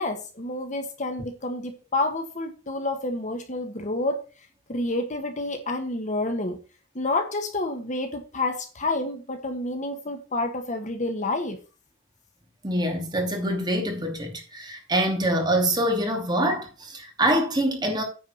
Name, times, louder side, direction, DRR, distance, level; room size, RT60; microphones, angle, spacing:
voice 1, 0.0-4.2 4.7-6.6 6.9-11.6, left 2 dB, 40° left, 1.3 m, -29 dB
voice 2, 12.6-18.0, right 1 dB, 20° right, 2.8 m, -25 dB
9.6 x 4.7 x 6.8 m
head